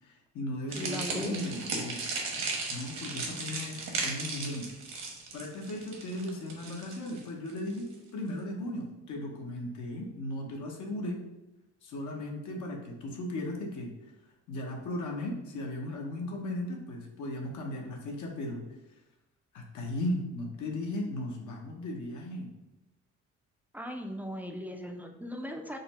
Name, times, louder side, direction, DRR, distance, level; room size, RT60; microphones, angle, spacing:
voice 1, 0.0-2.0 2.7-4.7 5.3-11.2 11.8-13.9 14.5-18.6 19.5-22.5, left 1 dB, 75° left, -1 dB, 0.8 m, -36 dB
voice 2, 0.7-1.4 23.7-25.8, equal, 5° right, 3 dB, 0.3 m, -38 dB
sound 1, 0.7-7.9, right 3 dB, 65° right, 1.0 m, -36 dB
3.9 x 2.0 x 4.0 m, 1.0 s
cardioid pair, 90°, 30 cm